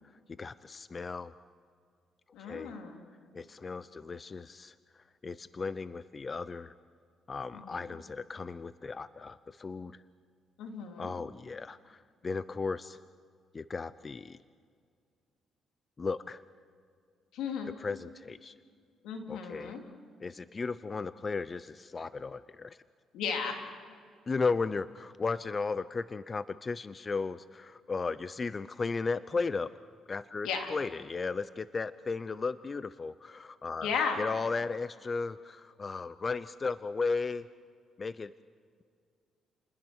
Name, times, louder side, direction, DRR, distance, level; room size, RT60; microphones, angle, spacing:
voice 1, 0.4-1.3 2.4-2.7 3.3-4.7 5.2-6.7 7.3-10.0 11.0-13.0 13.5-14.4 16.0-16.4 17.8-18.5 19.3-19.8 20.2-22.8 24.3-29.7 30.1-33.9 34.2-37.5 38.0-38.3, left 4 dB, 35° left, 15 dB, 0.6 m, -35 dB
voice 2, 2.3-3.0 7.5-7.9 10.6-11.1 17.3-17.7 19.0-19.8 23.1-23.7 30.4-30.7 33.8-34.3, left 6 dB, 85° left, 3 dB, 3.5 m, -35 dB
29.5 x 20.5 x 6.4 m, 2.1 s
cardioid pair, 90°, 0 cm